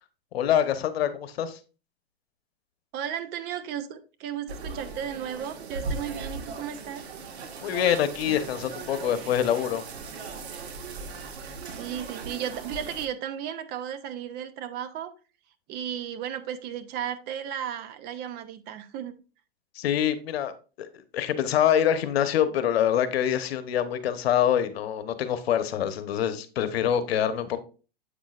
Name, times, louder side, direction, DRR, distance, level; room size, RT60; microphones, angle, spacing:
voice 1, 0.3-1.6 7.6-9.8 19.7-27.6, left 10 dB, 75° left, 1.0 m, -25 dB
voice 2, 2.9-7.0 11.8-15.1 15.7-19.2, right 9 dB, 30° right, 0.7 m, -34 dB
sound 1, 4.5-13.1, right 4 dB, 85° right, 1.6 m, -38 dB
8.2 x 6.2 x 2.4 m
hypercardioid pair, 135°, 31 cm